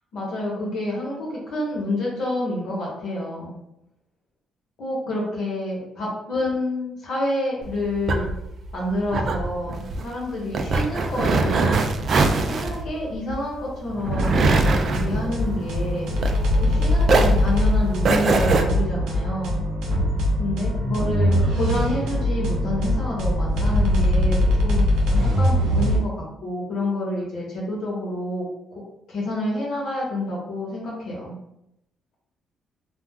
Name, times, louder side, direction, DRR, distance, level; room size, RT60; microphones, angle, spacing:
voice 1, 0.1-3.6 4.8-8.3 8.7-11.8 12.4-16.2 16.6-19.6 20.4-24.8 25.1-28.4 28.7-28.8 29.1-31.4, left 1 dB, 70° left, -4 dB, 1.0 m, -28 dB
sound 1, 7.6-16.7 17.0-18.6, right 3 dB, 55° right, 0.3 m, -23 dB
sound 2, 14.1-26.0, left 1 dB, 90° right, 0.7 m, -22 dB
2.3 x 2.2 x 3.6 m, 0.84 s
cardioid pair, 90°, 0 cm